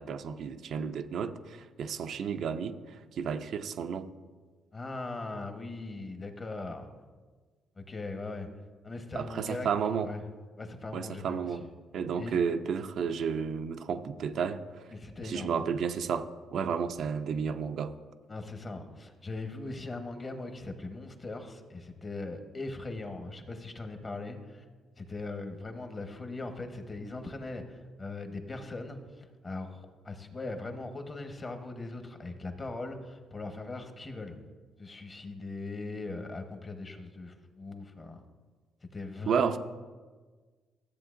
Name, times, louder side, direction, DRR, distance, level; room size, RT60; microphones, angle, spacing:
voice 1, 0.0-4.1 9.2-10.1 10.9-11.7 11.9-14.8 15.2-17.9 39.3-39.6, right 6 dB, 65° right, 8 dB, 0.4 m, -32 dB
voice 2, 4.7-6.9 7.8-8.5 8.8-9.7 10.0-10.2 10.6-11.7 12.2-12.4 14.9-15.6 18.3-24.6 25.0-34.4 34.8-38.2 38.9-39.6, left 3 dB, 30° left, 6 dB, 1.1 m, -40 dB
13.5 x 7.5 x 2.5 m, 1.4 s
cardioid pair, 90°, 0 cm